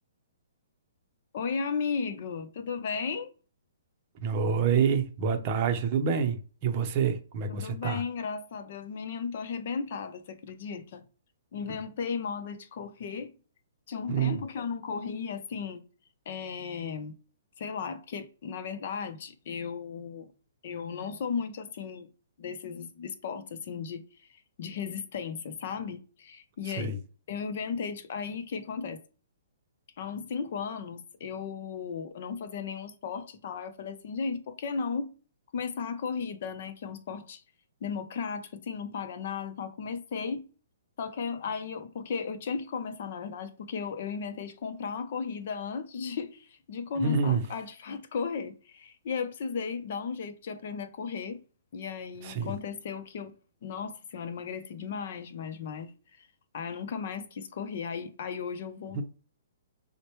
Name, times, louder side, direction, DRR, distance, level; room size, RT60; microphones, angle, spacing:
voice 1, 1.3-3.3 7.5-11.0 11.5-13.3 13.9-15.8 16.3-17.1 17.6-20.3 20.6-22.1 22.4-24.0 24.3-27.0 27.3-29.0 30.0-35.1 35.5-37.4 37.8-40.4 41.0-51.4 51.7-53.3 53.6-56.3 56.5-59.0, left 5 dB, 50° left, 0.6 m, -35 dB
voice 2, 4.2-8.0 14.1-14.4 26.6-27.0 47.0-47.4 52.2-52.5 58.9-59.0, right 6 dB, 30° right, 0.7 m, -27 dB
6.3 x 2.2 x 3.1 m
hypercardioid pair, 165°, 0 cm